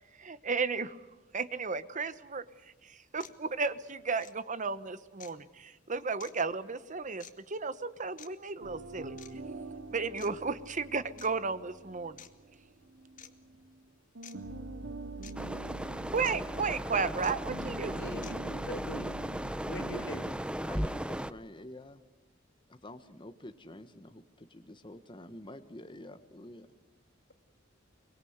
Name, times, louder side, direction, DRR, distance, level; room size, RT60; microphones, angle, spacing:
voice 1, 0.2-1.0 1.3-9.2 9.9-12.2 16.1-18.0, right 4 dB, 40° right, 14 dB, 1.1 m, -34 dB
sound 1, 2.5-2.6 3.2-3.4 4.2-4.3 5.2-5.4 6.2-6.3 7.2-7.3 8.2-8.3 9.2-9.4 10.2-10.3 11.2-11.3 12.2-12.3 13.2-13.3 14.2-14.4 15.2-15.3 16.2-16.3 17.2-17.3 18.2-18.3, left 9 dB, 45° left, 1.8 m, -49 dB
sound 2, 8.6-13.8 14.1-20.4, right 2 dB, 65° right, 2.4 m, -45 dB
sound 3, 15.3-21.3, equal, 5° right, 0.7 m, -36 dB
voice 2, 17.9-19.1 19.6-20.3, left 1 dB, 60° left, 8 dB, 2.6 m, -42 dB
voice 3, 20.7-22.0 22.7-26.7, left 1 dB, 25° left, 9 dB, 1.2 m, -48 dB
23.5 x 22.5 x 8.0 m, 1.2 s
head